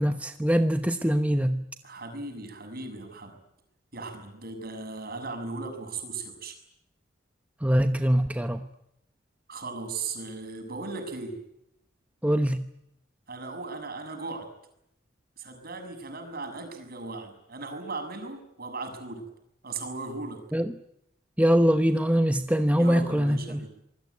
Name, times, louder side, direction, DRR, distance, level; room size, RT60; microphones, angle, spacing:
voice 1, 0.0-1.6 7.6-8.6 12.2-12.7 20.5-20.7 21.4-23.6, equal, 10° right, 1.0 m, -23 dB
voice 2, 1.8-3.4 3.9-6.6 9.5-11.4 13.3-14.5 15.4-19.3 19.6-20.4 22.8-23.7, right 3 dB, 50° right, 6.8 m, -37 dB
26.5 x 21.0 x 9.5 m
head